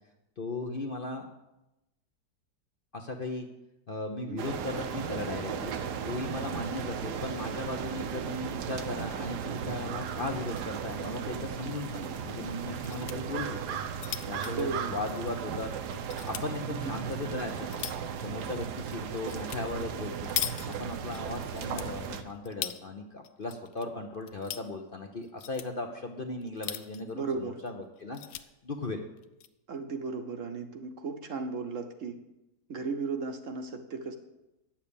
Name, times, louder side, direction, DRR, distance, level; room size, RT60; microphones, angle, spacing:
voice 1, 0.4-1.3 2.9-3.5 3.9-5.7 6.0-13.6 14.2-15.7 16.2-17.7 18.2-20.3 20.6-28.2 28.6-29.0, left 2 dB, 45° left, 3 dB, 0.8 m, -37 dB
sound 1, 4.4-22.2, right 7 dB, 80° right, 1.4 m, -36 dB
sound 2, 10.3-10.7 11.1-11.2 11.4-11.5 12.5-13.2 13.7-15.5 15.9-16.5 17.1-18.1 19.3-19.6 19.9-21.2 21.5-22.8 23.2-23.8 24.1-24.7 25.2-25.7 26.4-27.1 27.6-27.7 28.0-28.4 29.2-29.5, left 11 dB, 65° left, 0.8 m, -39 dB
voice 2, 14.6-15.0 16.7-16.9 27.1-27.6 29.7-32.2 32.7-34.1, right 4 dB, 55° right, 6 dB, 1.1 m, -35 dB
9.8 x 7.3 x 7.0 m, 0.94 s
omnidirectional pair, 1.7 m